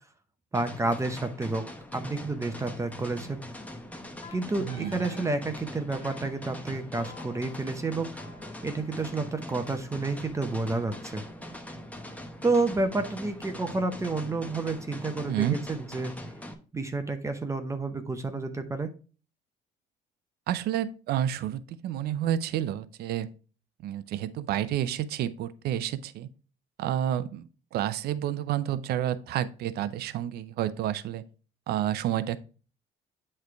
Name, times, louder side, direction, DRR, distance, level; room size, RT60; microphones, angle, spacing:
sound 1, 0.5-16.5, left 1 dB, 10° left, 1.0 m, -42 dB
voice 1, 0.5-1.7 1.9-3.4 4.3-8.2 8.6-11.2 12.4-16.1 16.7-18.9, right 3 dB, 15° right, 7 dB, 0.7 m, -30 dB
Wind instrument woodwind instrument, 4.2-5.3 5.9-6.3 7.0-10.0, left 3 dB, 35° left, 2.3 m, -50 dB
voice 2, 4.7-5.1 15.3-15.6 20.5-23.3 23.8-26.3 26.8-31.2 31.7-32.4, right 11 dB, 70° right, 14 dB, 0.5 m, -30 dB
8.2 x 3.3 x 4.5 m, 0.37 s
cardioid pair, 110°, 17 cm